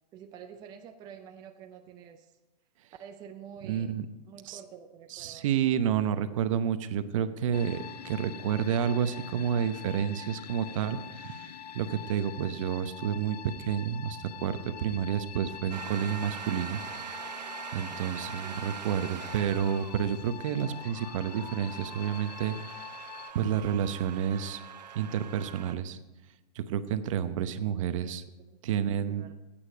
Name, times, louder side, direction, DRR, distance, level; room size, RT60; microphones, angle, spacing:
voice 1, 0.1-2.4 3.0-4.0 4.2-5.5 18.4-18.7 28.4-29.3, right 8 dB, 20° right, 5 dB, 0.6 m, -48 dB
voice 2, 3.6-4.1 4.5-4.6 5.1-17.4 17.7-22.9 23.3-24.6 24.9-26.0 26.5-28.2 28.6-29.3, right 8 dB, 50° right, 11 dB, 0.8 m, -30 dB
sound 1, 7.5-23.3, left 10 dB, 75° left, 0.7 m, -44 dB
sound 2, 15.7-25.7, right 9 dB, 85° right, 1.0 m, -43 dB
15.0 x 8.8 x 5.1 m, 1.1 s
hypercardioid pair, 145°, 21 cm